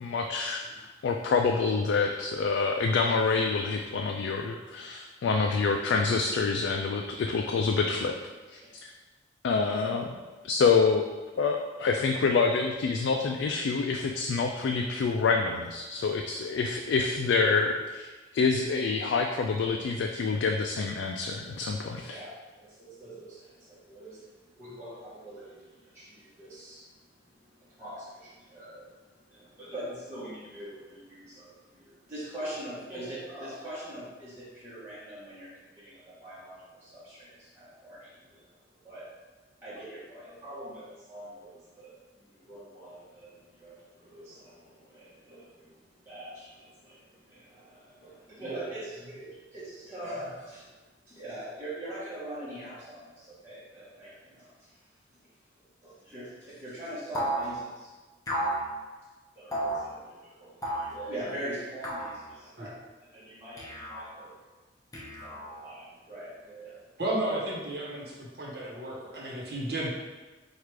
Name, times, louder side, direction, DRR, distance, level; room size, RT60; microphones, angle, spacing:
voice 1, 0.0-8.2 8.5-8.9 9.4-10.1 10.4-11.0 11.4-22.2, left 4 dB, 75° left, 2 dB, 0.3 m, -27 dB
voice 2, 21.9-39.1 39.6-50.8 51.0-54.8 55.1-55.2 55.6-57.9 59.3-64.4 65.2-66.9, right 1 dB, 15° right, -12 dB, 1.0 m, -43 dB
sound 1, 57.1-57.5 58.3-58.6 59.5-59.8 60.6-60.9 61.8-62.2 63.6-64.1 64.9-65.6, right 1 dB, 20° left, 0.7 m, -32 dB
voice 3, 67.0-69.9, right 1 dB, 60° right, -4 dB, 1.0 m, -33 dB
4.7 x 2.4 x 4.6 m, 1.3 s
head